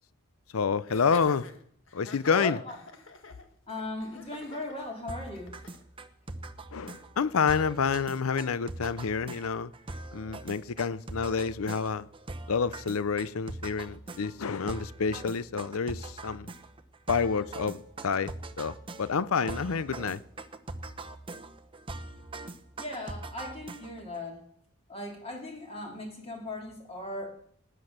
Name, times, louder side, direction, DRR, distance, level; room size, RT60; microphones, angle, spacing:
voice 1, 0.5-1.5 1.9-2.6 6.7-9.7 10.1-12.1 12.5-16.5 17.1-20.2, left 5 dB, 75° left, 0.6 m, -29 dB
Laughter, 0.9-5.8, left 4 dB, 60° left, 1.6 m, -48 dB
voice 2, 2.3-2.8 3.7-5.5 22.8-24.5 24.9-27.4, left 2 dB, 25° left, 2.8 m, -38 dB
sound 1, 5.1-24.2, right 2 dB, 25° right, 0.8 m, -42 dB
19.0 x 9.0 x 6.6 m
head